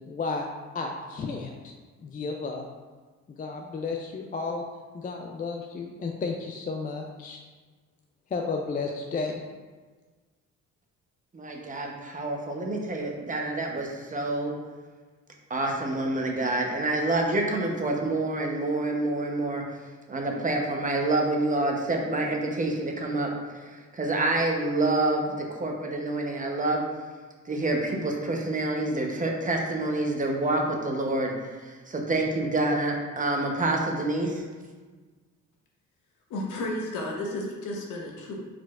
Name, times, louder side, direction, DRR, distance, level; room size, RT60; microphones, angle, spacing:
voice 1, 0.1-1.7 2.0-2.7 3.3-4.6 4.9-7.4 8.3-9.4, left 4 dB, 30° left, 2 dB, 0.4 m, -33 dB
voice 2, 11.3-14.5 15.5-19.8 20.1-26.8 27.5-34.4, right 2 dB, 25° right, 1 dB, 0.8 m, -27 dB
voice 3, 36.3-38.4, left 1 dB, 85° left, -1 dB, 1.0 m, -32 dB
4.6 x 4.1 x 2.4 m, 1.4 s
cardioid pair, 90°, 30 cm